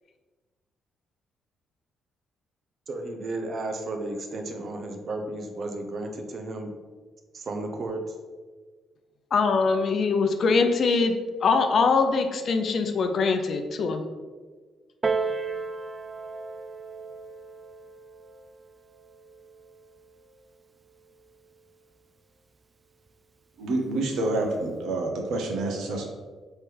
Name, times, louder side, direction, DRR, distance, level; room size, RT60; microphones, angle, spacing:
voice 1, 2.9-6.7 7.3-8.1, right 2 dB, 50° right, 4 dB, 0.7 m, -33 dB
voice 2, 9.3-14.0, left 4 dB, 55° left, 6 dB, 0.5 m, -23 dB
Piano, 15.0-20.2 21.0-21.1, right 4 dB, 30° right, 0.3 m, -34 dB
voice 3, 23.6-26.1, right 2 dB, 80° right, 1 dB, 0.8 m, -28 dB
3.5 x 3.3 x 4.6 m, 1.4 s
cardioid pair, 90°, 0 cm